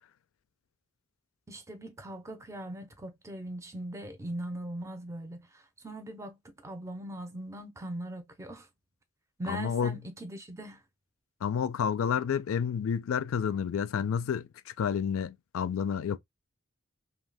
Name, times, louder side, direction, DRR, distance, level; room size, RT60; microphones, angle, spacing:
voice 1, 1.5-8.7 9.4-10.8, right 1 dB, 15° right, 0.5 m, -40 dB
voice 2, 9.5-10.0 11.4-16.2, left 7 dB, 85° left, 0.3 m, -30 dB
2.7 x 2.3 x 3.3 m
head